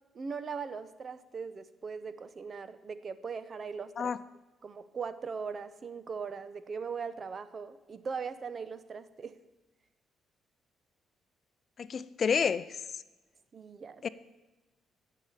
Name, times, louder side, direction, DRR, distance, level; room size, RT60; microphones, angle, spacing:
voice 1, 0.1-4.1 4.6-9.4 13.5-14.0, right 5 dB, 45° right, 13 dB, 0.8 m, -40 dB
voice 2, 11.8-12.8 14.0-14.1, left 6 dB, 50° left, 15 dB, 0.5 m, -29 dB
15.5 x 6.8 x 7.3 m, 1.1 s
cardioid pair, 90°, 0 cm